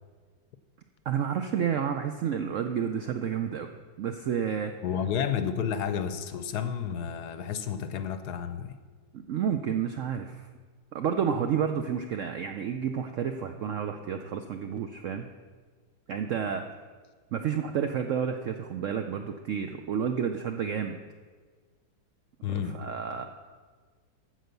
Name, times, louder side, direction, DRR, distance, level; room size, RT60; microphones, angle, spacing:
voice 1, 1.1-3.7 4.0-4.7 9.1-10.5 10.9-15.3 16.1-16.6 17.3-21.0 22.5-23.3, right 8 dB, 75° right, 6 dB, 0.7 m, -30 dB
voice 2, 4.8-8.8 22.4-22.8, left 8 dB, 70° left, 11 dB, 1.1 m, -31 dB
14.0 x 4.9 x 6.6 m, 1.5 s
omnidirectional pair, 1.9 m